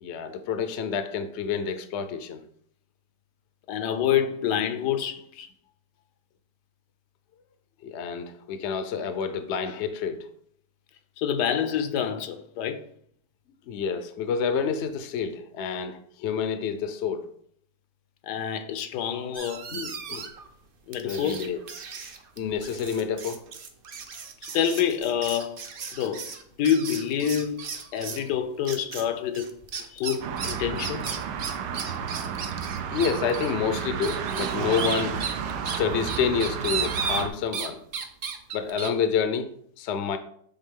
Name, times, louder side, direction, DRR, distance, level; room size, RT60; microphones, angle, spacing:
voice 1, 0.0-2.4 7.8-10.3 13.7-17.3 19.7-20.3 21.0-21.6 22.4-23.4 32.9-35.2 35.6-37.8 38.5-39.5 39.8-40.2, left 6 dB, 70° left, 10 dB, 0.6 m, -28 dB
voice 2, 3.7-5.5 11.2-12.8 18.2-19.7 20.9-21.5 24.4-25.6 25.9-26.3 26.6-27.7 27.9-29.5 29.9-31.2, left 9 dB, 90° left, 9 dB, 1.2 m, -27 dB
sound 1, 19.3-20.5 20.9-28.3 28.7-29.1 29.3-37.7 37.9-38.9, right 6 dB, 70° right, 0.5 m, -35 dB
sound 2, 30.2-37.3, right 7 dB, 85° right, 1.3 m, -32 dB
8.1 x 3.5 x 3.6 m, 0.65 s
omnidirectional pair, 1.8 m